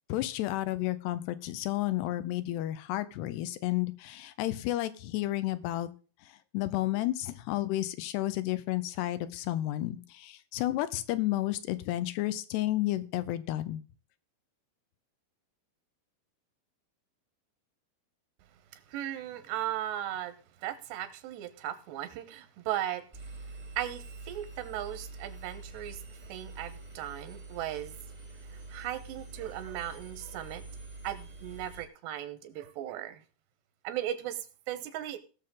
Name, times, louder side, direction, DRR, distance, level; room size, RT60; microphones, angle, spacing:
voice 1, 0.1-5.9 6.5-13.8, left 15 dB, 85° left, 14 dB, 2.9 m, -31 dB
voice 2, 18.7-20.3 20.6-23.1 23.8-26.0 26.3-28.0 28.7-30.6 31.0-33.2 33.8-35.2, right 12 dB, 85° right, 11 dB, 3.2 m, -37 dB
Engine, 23.1-31.8, right 3 dB, 25° right, 0.9 m, -46 dB
19.0 x 6.8 x 3.8 m, 0.36 s
omnidirectional pair, 4.7 m